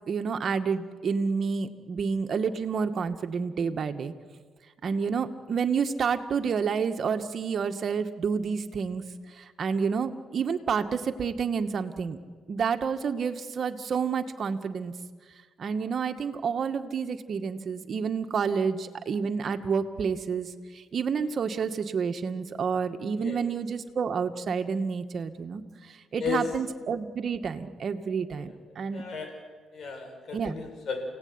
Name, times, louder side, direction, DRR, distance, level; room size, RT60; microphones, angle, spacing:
voice 1, 0.1-4.1 4.8-9.0 9.3-12.2 12.5-14.9 15.6-29.0 30.3-30.6, right 6 dB, 50° right, 7 dB, 2.1 m, -29 dB
voice 2, 28.9-29.3 29.7-31.0, left 6 dB, 60° left, 4 dB, 7.7 m, -34 dB
29.5 x 18.0 x 9.9 m, 1.5 s
cardioid pair, 90°, 0 cm